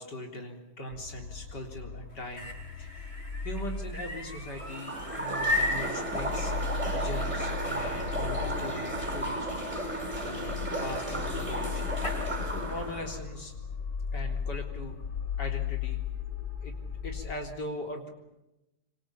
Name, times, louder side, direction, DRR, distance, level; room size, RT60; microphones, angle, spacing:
voice 1, 0.0-2.5 2.8-3.1 3.4-9.5 10.1-11.8 12.5-13.6 14.1-15.0 15.4-16.0 16.6-16.7 17.0-18.1, left 1 dB, 80° left, 2 dB, 4.4 m, -40 dB
sound 1, 0.9-17.3, left 6 dB, 60° left, 2.9 m, -37 dB
sound 2, 2.1-12.2, left 1 dB, 30° left, 5.9 m, -38 dB
sound 3, 4.5-13.2, right 1 dB, 5° right, 5.5 m, -34 dB
26.5 x 25.0 x 8.9 m, 0.97 s
omnidirectional pair, 1.8 m